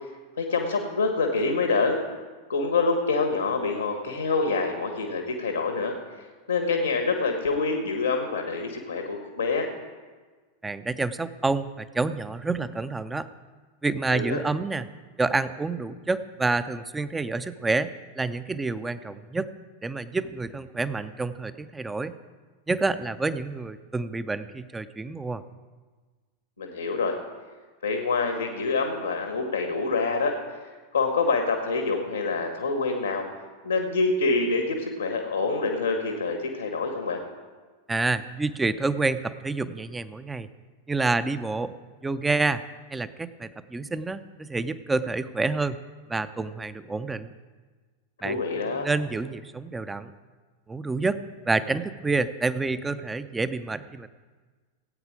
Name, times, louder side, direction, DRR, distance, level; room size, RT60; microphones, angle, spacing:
voice 1, 0.4-2.0 2.5-9.7 14.1-14.4 26.6-27.2 27.8-30.4 30.9-33.3 33.6-37.2 48.2-48.9, left 4 dB, 75° left, 4 dB, 1.4 m, -26 dB
voice 2, 10.6-13.3 13.8-14.9 15.2-17.9 18.2-19.5 19.8-22.2 22.7-25.4 37.9-40.5 40.9-41.7 42.0-42.6 42.9-45.8 46.1-47.3 48.2-48.4 48.7-50.1 50.7-54.1, right 3 dB, 10° right, 13 dB, 0.5 m, -28 dB
17.0 x 8.8 x 4.9 m, 1.4 s
figure-of-eight pair, 90°, 0 cm